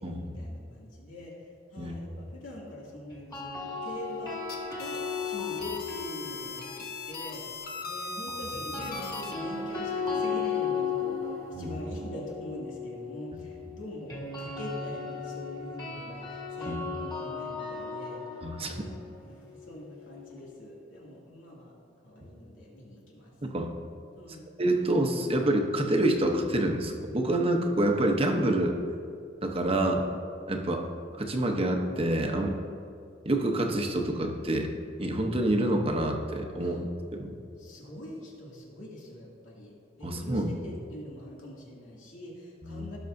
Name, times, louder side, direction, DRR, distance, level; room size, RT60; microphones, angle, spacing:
voice 1, 0.0-4.4 4.8-6.7 7.1-7.4 7.8-18.2 18.6-18.9 19.2-21.7 22.0-23.3 24.1-24.5 30.5-30.7 36.5-36.8 37.6-43.0, left 1 dB, 85° left, -4 dB, 2.4 m, -43 dB
sound 1, 3.1-7.3 8.5-20.4, left 5 dB, 20° left, 1.9 m, -36 dB
sound 2, 4.3-9.4, left 3 dB, 50° left, 1.0 m, -39 dB
voice 2, 18.4-18.8 23.4-23.7 24.6-28.8 29.4-30.0 30.5-30.8 31.2-32.6 33.2-34.7 35.0-36.8 37.1-37.4 40.0-40.5 42.6-42.9, right 1 dB, 30° right, 3 dB, 0.8 m, -27 dB
17.0 x 6.2 x 2.6 m, 2.5 s
head